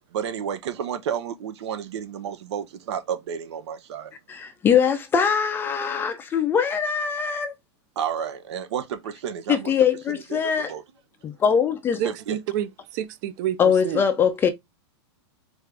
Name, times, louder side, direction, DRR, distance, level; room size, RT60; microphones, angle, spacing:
voice 1, 0.1-4.1 8.0-9.7 10.3-10.4 10.7-10.8 12.0-12.4, right 8 dB, 70° right, 0.8 m, -31 dB
voice 2, 4.3-7.5 9.5-10.7 11.2-12.0 13.6-14.5, left 7 dB, 15° left, 0.4 m, -22 dB
voice 3, 12.0-13.6 13.8-14.0, right 11 dB, 40° right, 0.5 m, -28 dB
4.5 x 2.5 x 3.3 m
supercardioid pair, 155°, 15 cm